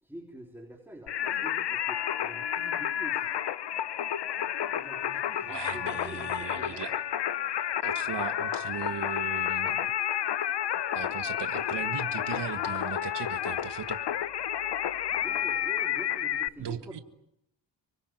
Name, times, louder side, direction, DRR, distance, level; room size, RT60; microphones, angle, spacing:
voice 1, 0.0-3.3 4.7-6.9 15.2-17.0, right 1 dB, 5° right, 2 dB, 3.7 m, -46 dB
Singing, 1.1-16.5, left 10 dB, 65° left, 1.0 m, -31 dB
voice 2, 5.5-6.9 7.8-9.9 10.9-14.0 16.6-17.0, right 9 dB, 65° right, 9 dB, 1.6 m, -38 dB
26.5 x 24.5 x 9.2 m, 0.77 s
wide cardioid pair, 115°, 44 cm